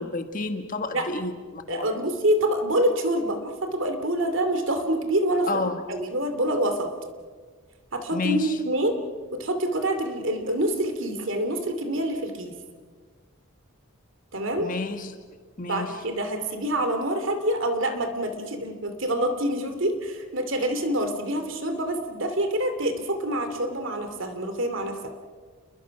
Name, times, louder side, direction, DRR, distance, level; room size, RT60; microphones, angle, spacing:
voice 1, 0.0-1.9 5.5-5.8 8.1-8.6 14.6-15.1 15.6-15.9, left 3 dB, 40° left, 7 dB, 1.6 m, -30 dB
voice 2, 1.7-6.9 7.9-9.0 9.3-12.5 14.3-14.7 15.6-25.1, right 1 dB, 60° right, 7 dB, 2.7 m, -26 dB
28.5 x 22.0 x 5.9 m, 1.5 s
head